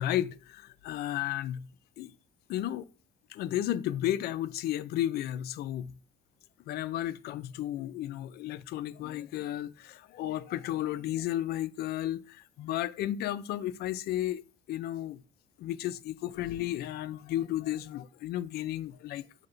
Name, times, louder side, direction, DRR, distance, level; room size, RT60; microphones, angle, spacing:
voice 1, 0.0-1.7 2.0-2.1 2.5-2.8 3.3-5.9 6.7-14.4 14.7-15.2 15.6-19.5, left 13 dB, 70° left, 0.4 m, -33 dB
4.3 x 2.8 x 3.9 m
cardioid pair, 110°, 17 cm